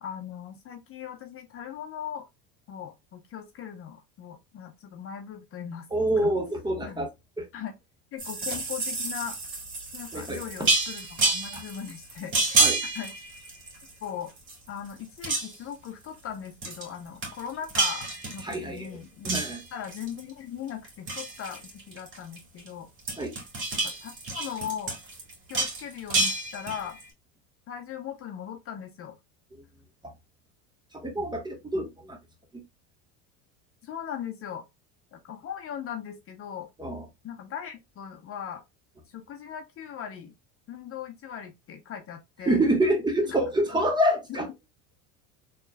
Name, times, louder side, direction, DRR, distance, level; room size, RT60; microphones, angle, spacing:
voice 1, 0.0-2.3 2.7-5.9 6.2-6.3 6.8-7.0 7.5-7.7 8.1-9.4 9.9-13.1 14.0-14.3 14.7-19.3 19.7-22.9 23.7-25.0 25.5-27.0 27.7-29.2 33.8-34.7 35.1-36.7 37.2-38.6 39.1-40.3 40.7-42.6, left 9 dB, 40° left, 0.7 m, -39 dB
voice 2, 5.9-7.1 7.4-7.5 10.1-10.7 11.5-11.6 12.6-12.8 18.4-19.0 19.2-19.6 23.2-23.3 29.5-29.6 30.0-30.1 30.9-32.2 32.5-32.6 36.8-37.1 42.4-44.5, right 1 dB, 10° right, 1.1 m, -27 dB
sound 1, 8.2-14.0 14.4-14.9 15.2-15.7 16.6-16.9 17.2-18.8 19.2-20.3 20.7-22.7 23.0-27.0, right 3 dB, 35° right, 2.1 m, -29 dB
4.2 x 3.2 x 2.2 m
supercardioid pair, 115°, 35 cm